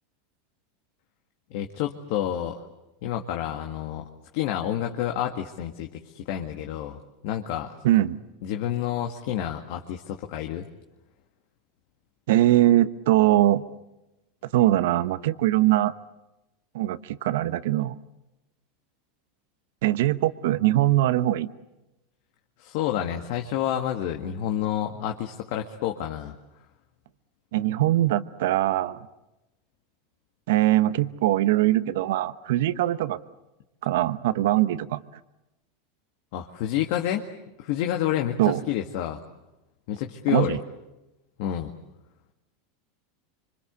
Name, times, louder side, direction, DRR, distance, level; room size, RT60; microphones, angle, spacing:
voice 1, 1.5-2.6 3.0-4.0 4.3-7.7 8.4-10.7 22.6-26.4 36.3-37.2 37.6-39.2 39.9-40.6 41.4-41.7, left 11 dB, 65° left, 4 dB, 1.9 m, -29 dB
voice 2, 7.8-8.2 12.3-13.6 14.5-15.9 16.7-18.0 19.8-21.5 27.5-29.0 30.5-33.2 33.8-35.0 38.4-38.6 40.3-40.6, right 14 dB, 75° right, 14 dB, 1.0 m, -22 dB
26.5 x 25.0 x 8.2 m, 0.97 s
supercardioid pair, 115°, 0 cm